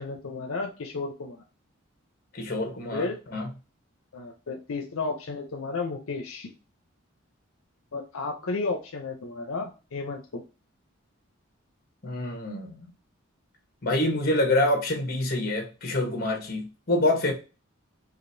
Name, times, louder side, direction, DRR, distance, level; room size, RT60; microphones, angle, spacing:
voice 1, 0.0-1.4 2.9-3.2 4.1-6.5 7.9-10.4, left 3 dB, 75° left, 0.6 m, -33 dB
voice 2, 2.3-3.5 12.0-12.9 13.8-17.3, left 1 dB, 45° left, 1.1 m, -26 dB
5.0 x 2.5 x 2.6 m
head